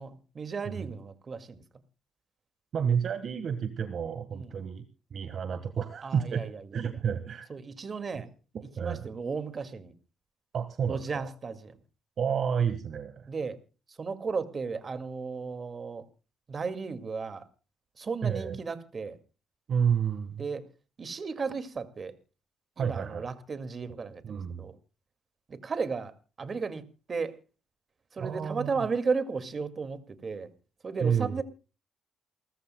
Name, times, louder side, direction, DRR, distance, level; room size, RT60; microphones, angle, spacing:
voice 1, 0.0-1.6 4.3-4.5 6.0-6.6 7.5-8.3 8.8-9.9 10.9-11.7 13.3-13.6 14.0-16.0 16.5-17.4 18.0-19.2 20.4-20.6 21.0-22.1 22.8-24.2 24.6-24.8 25.5-26.1 26.4-26.8 27.1-27.4 28.1-30.5 30.8-31.4, right 5 dB, 40° right, 10 dB, 2.1 m, -34 dB
voice 2, 2.7-4.8 5.1-6.4 6.7-7.5 8.5-9.1 10.5-11.3 12.2-13.3 18.2-18.6 19.7-20.4 22.8-23.3 24.0-24.6 28.2-28.9 31.0-31.4, right 7 dB, 60° right, 9 dB, 1.5 m, -30 dB
28.5 x 14.0 x 2.2 m, 0.33 s
cardioid pair, 90°, 0 cm